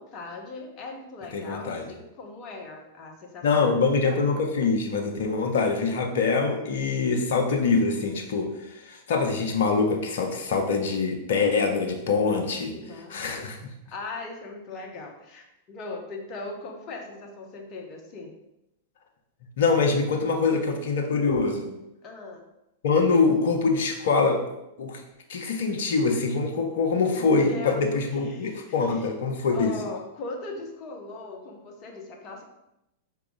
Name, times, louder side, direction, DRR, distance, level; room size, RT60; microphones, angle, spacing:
voice 1, 0.0-3.7 12.7-13.5 13.9-18.3 22.0-22.5 27.1-27.9 28.2-28.5 28.9-29.1 29.5-32.4, left 3 dB, 35° left, 2 dB, 0.9 m, -39 dB
voice 2, 1.3-1.8 3.4-12.7 13.1-13.6 19.6-21.7 22.8-24.4 24.8-25.0 25.3-29.7, left 4 dB, 60° left, 3 dB, 0.7 m, -24 dB
4.7 x 2.9 x 3.7 m, 0.88 s
figure-of-eight pair, 95°, 0 cm